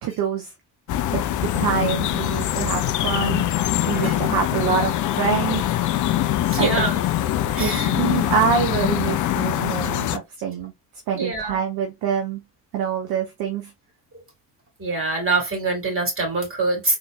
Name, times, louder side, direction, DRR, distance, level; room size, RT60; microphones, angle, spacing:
voice 1, 0.0-0.5 1.1-3.5 3.9-5.6 6.6-6.8 7.6-10.7 11.1-12.4 12.7-13.7, right 7 dB, 50° right, 0.9 m, -25 dB
sound 1, 0.9-10.2, left 12 dB, 40° left, 0.5 m, -23 dB
voice 2, 6.5-7.0 7.5-8.1 11.1-11.6 14.8-17.0, right 3 dB, 25° right, 2.7 m, -25 dB
3.9 x 3.2 x 2.3 m
hypercardioid pair, 55°, 48 cm